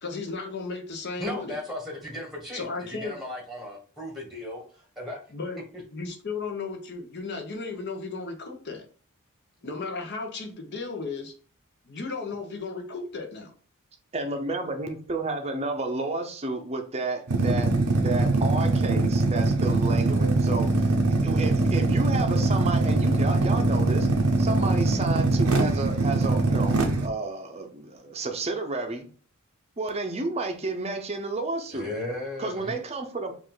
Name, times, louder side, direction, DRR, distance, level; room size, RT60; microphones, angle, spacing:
voice 1, 0.0-1.6 2.5-3.2 5.3-5.6 5.9-8.9 9.6-11.3 11.9-13.5, left 4 dB, 50° left, 1.0 m, -35 dB
voice 2, 1.2-4.6 5.0-5.2 31.7-32.8, left 1 dB, ahead, 1.2 m, -36 dB
voice 3, 14.1-17.7 18.0-20.9 21.2-24.1 24.4-29.1 29.8-31.9 32.4-33.3, right 2 dB, 30° right, 0.7 m, -31 dB
sound 1, 17.3-27.1, right 2 dB, 90° right, 0.8 m, -22 dB
5.1 x 2.6 x 3.9 m
head